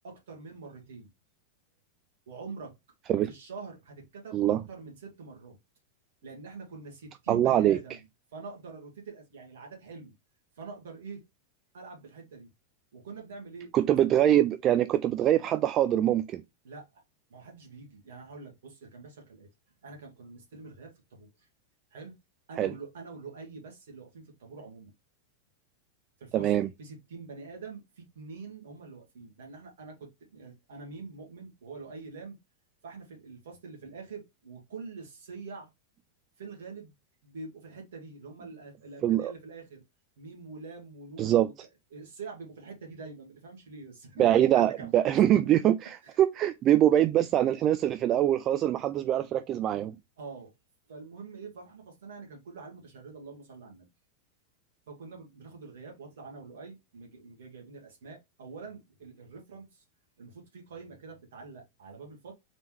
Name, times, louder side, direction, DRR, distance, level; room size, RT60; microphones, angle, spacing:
voice 1, 0.0-1.1 2.3-2.7 3.1-5.6 6.2-8.0 8.3-10.1 10.6-11.2 11.7-12.5 12.9-14.0 16.6-17.0 17.3-19.5 19.8-21.5 21.9-22.2 22.5-24.9 26.2-26.5 26.8-32.4 32.8-35.7 36.4-36.9 37.2-39.8 40.2-41.5 41.9-45.1 46.0-46.2 50.2-50.5 50.9-53.9 54.9-59.8 60.2-62.3, right 4 dB, 60° right, 2.0 m, -45 dB
voice 2, 7.3-7.8 13.7-16.4 22.6-22.7 26.3-26.7 39.0-39.3 41.2-41.5 44.2-50.0, right 11 dB, 30° right, 0.3 m, -24 dB
4.1 x 3.5 x 3.1 m
figure-of-eight pair, 90°, 0 cm